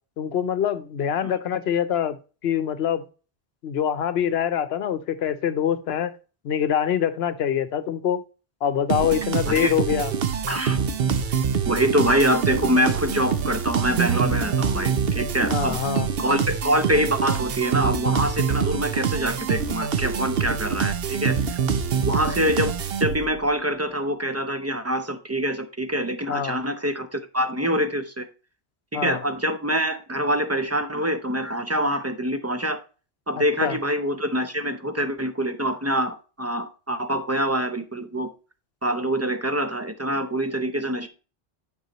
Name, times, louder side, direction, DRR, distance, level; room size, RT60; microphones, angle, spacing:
voice 1, 0.2-2.2 2.4-3.0 3.6-6.1 6.4-8.2 8.6-10.1 15.5-16.1 26.3-26.6 28.9-29.2 33.6-33.8, left 9 dB, 70° left, 0.9 m, -24 dB
sound 1, 8.9-23.5, right 7 dB, 65° right, 0.9 m, -25 dB
voice 2, 10.5-10.8 11.7-15.8 16.2-21.6 22.0-28.3 28.9-32.8 33.3-38.3 38.8-41.1, right 1 dB, 20° right, 0.5 m, -25 dB
9.3 x 5.5 x 3.0 m
omnidirectional pair, 1.1 m